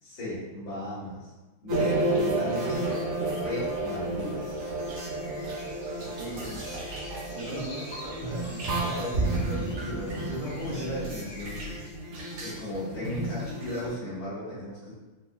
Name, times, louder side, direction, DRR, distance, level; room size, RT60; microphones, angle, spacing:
voice 1, 0.0-1.3 1.6-2.8 3.2-4.7 7.5-8.1 8.9-11.7 12.4-14.9, equal, 60° left, -10 dB, 2.3 m, -36 dB
sound 1, 1.7-13.9, right 2 dB, 60° right, 1.9 m, -31 dB
sound 2, 3.2-11.9, left 2 dB, 80° left, 1.2 m, -46 dB
voice 2, 6.0-6.8 7.3-9.1, right 2 dB, 75° right, -6 dB, 2.0 m, -40 dB
5.6 x 2.5 x 2.2 m, 1.2 s
omnidirectional pair, 3.7 m